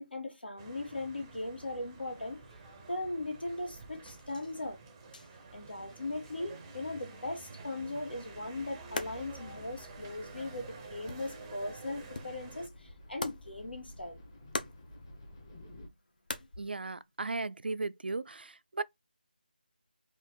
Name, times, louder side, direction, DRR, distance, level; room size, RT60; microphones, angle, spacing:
voice 1, 0.0-2.4 2.9-4.8 5.5-14.2, left 2 dB, 80° left, 1.6 m, -39 dB
sound 1, 0.6-12.7, right 3 dB, 15° right, 0.6 m, -49 dB
sound 2, 1.3-18.1, left 2 dB, 55° left, 0.8 m, -47 dB
sound 3, 8.2-15.9, left 1 dB, 25° left, 1.0 m, -54 dB
voice 2, 16.6-18.8, right 3 dB, 80° right, 0.4 m, -36 dB
3.6 x 2.5 x 4.2 m
figure-of-eight pair, 165°, 5 cm